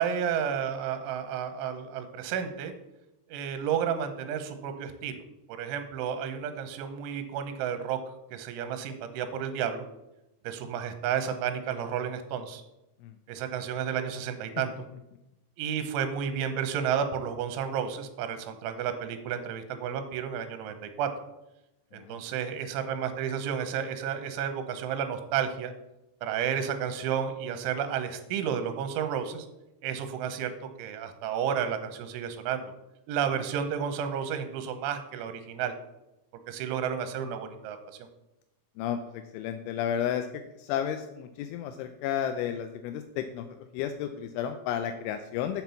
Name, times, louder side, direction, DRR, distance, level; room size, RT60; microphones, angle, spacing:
voice 1, 0.0-2.7 3.3-5.2 5.5-8.0 8.3-9.8 10.4-12.6 13.3-14.7 15.6-21.1 21.9-25.7 26.2-29.5 29.8-32.7 33.1-35.8 36.5-38.0, right 8 dB, 85° right, 8 dB, 3.3 m, -31 dB
voice 2, 38.8-40.3 40.6-45.6, left 9 dB, 85° left, 7 dB, 2.9 m, -32 dB
7.5 x 6.0 x 6.9 m, 0.93 s
omnidirectional pair, 5.5 m